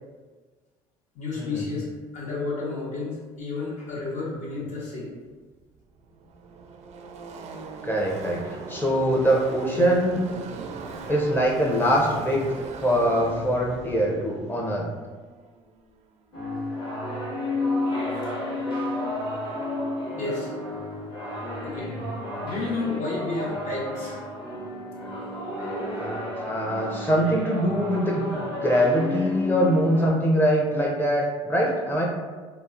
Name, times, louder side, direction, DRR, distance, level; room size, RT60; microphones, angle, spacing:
voice 1, 1.1-5.1 20.2-20.5 21.6-22.1 22.4-24.2, left 3 dB, 55° left, -4 dB, 1.0 m, -31 dB
Car passing by / Race car auto racing, 5.2-5.3 5.5-16.1, right 4 dB, 50° right, 0.4 m, -40 dB
voice 2, 7.8-10.2 11.1-12.4 12.8-14.9 21.8-22.0 26.0-28.3 28.6-32.1, equal, 15° left, -2 dB, 0.6 m, -23 dB
sound 1, 16.3-30.1, left 2 dB, 35° left, 0.9 m, -31 dB
2.8 x 2.1 x 2.4 m, 1.4 s
hypercardioid pair, 75°, 14 cm